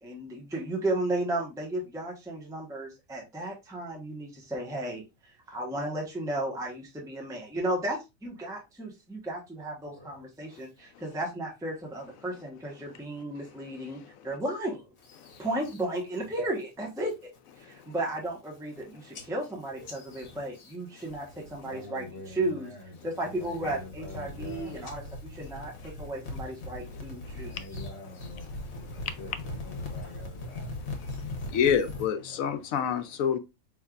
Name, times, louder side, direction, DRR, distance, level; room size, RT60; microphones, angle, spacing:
voice 1, 0.0-14.0 14.2-14.8 15.4-17.3 17.6-22.7 23.0-27.6, right 1 dB, 5° right, 0.9 m, -34 dB
voice 2, 9.8-10.7 21.6-25.1 26.4-30.7 31.4-32.8, left 2 dB, 35° left, 1.7 m, -47 dB
voice 3, 13.4-14.3 15.2-15.4 17.6-17.9 25.8-25.9 26.9-27.7 28.6-29.2 31.0-33.4, left 8 dB, 85° left, 1.0 m, -31 dB
sound 1, 15.0-15.8 16.2-16.6 17.0-17.4 17.8-17.9 18.1-18.8 19.1-21.7 22.0-22.5 23.0-32.1, left 2 dB, 55° left, 1.2 m, -41 dB
5.2 x 3.2 x 2.3 m
omnidirectional pair, 1.4 m